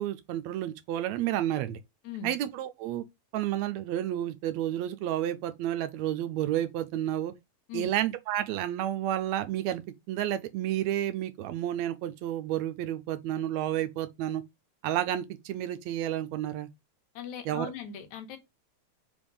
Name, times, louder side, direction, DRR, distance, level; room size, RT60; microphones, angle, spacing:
voice 1, 0.0-1.8 2.2-3.0 3.3-7.3 7.7-14.4 14.8-16.7 17.5-17.7, right 12 dB, 80° right, 1.8 m, -31 dB
voice 2, 17.2-18.4, left 8 dB, 85° left, 2.4 m, -39 dB
5.1 x 3.5 x 5.4 m
omnidirectional pair, 3.3 m